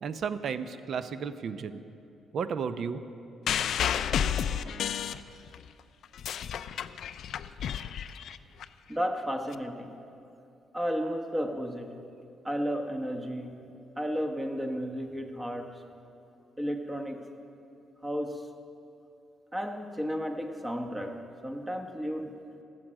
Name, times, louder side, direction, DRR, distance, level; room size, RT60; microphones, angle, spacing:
voice 1, 0.0-1.8 2.3-3.0, right 6 dB, 60° right, 12 dB, 0.6 m, -33 dB
sound 1, 3.5-5.7 6.0-8.6 9.5-9.6, left 9 dB, 70° left, 0.3 m, -31 dB
voice 2, 8.9-10.0 10.7-12.0 12.4-13.6 14.0-15.8 16.6-17.2 18.0-18.5 19.5-22.3, equal, 15° right, 4 dB, 1.1 m, -33 dB
14.0 x 7.7 x 6.2 m, 2.7 s
cardioid pair, 90°, 0 cm